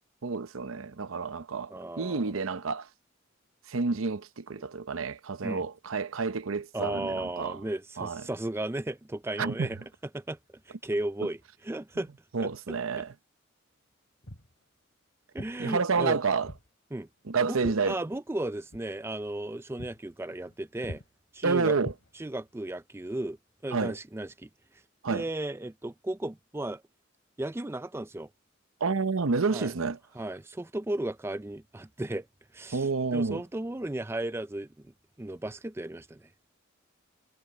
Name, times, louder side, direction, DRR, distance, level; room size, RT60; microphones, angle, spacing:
voice 1, 0.2-2.9 3.7-7.6 8.0-8.2 9.4-9.7 12.3-13.1 15.6-16.5 17.3-18.0 21.4-21.9 23.7-23.9 25.0-25.2 28.8-30.0 32.7-33.4, right 4 dB, 85° right, 0.8 m, -29 dB
voice 2, 1.7-2.3 5.4-5.6 6.7-9.8 10.1-12.1 12.4-12.8 15.3-16.2 16.9-17.1 17.4-21.0 21.3-21.8 22.1-23.4 23.6-24.8 25.1-26.8 27.4-28.3 29.5-29.7 30.1-32.3 32.5-34.9 35.2-36.3, right 1 dB, 10° right, 0.4 m, -35 dB
Walk footsteps, 14.2-14.5 15.4-15.6 16.4-16.7 17.0-18.4 18.7-18.9 19.3-19.5 19.8-20.0 20.3-20.6 20.8-21.1 21.8-22.5, left 1 dB, 70° left, 2.8 m, -43 dB
head